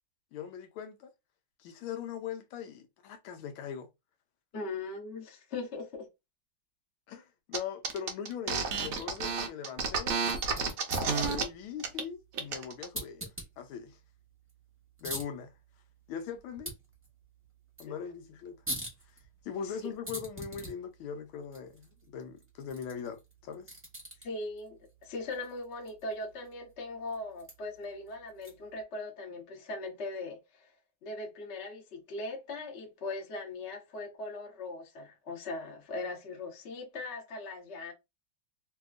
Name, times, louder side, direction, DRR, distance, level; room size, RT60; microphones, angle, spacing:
voice 1, 0.3-1.1 1.6-3.9 7.1-10.2 11.0-14.0 15.0-15.5 16.1-16.7 17.8-18.6 19.4-23.7, left 7 dB, 80° left, 1.4 m, -40 dB
voice 2, 4.5-6.1 17.9-18.0 24.2-30.7 31.0-37.9, left 2 dB, 50° left, 0.9 m, -40 dB
sound 1, 7.5-7.6 7.8-11.4 11.8-12.0 12.3-12.9, right 5 dB, 80° right, 0.7 m, -31 dB
sound 2, 10.1-28.8, right 1 dB, 10° right, 0.7 m, -46 dB
3.3 x 2.8 x 2.4 m
omnidirectional pair, 2.4 m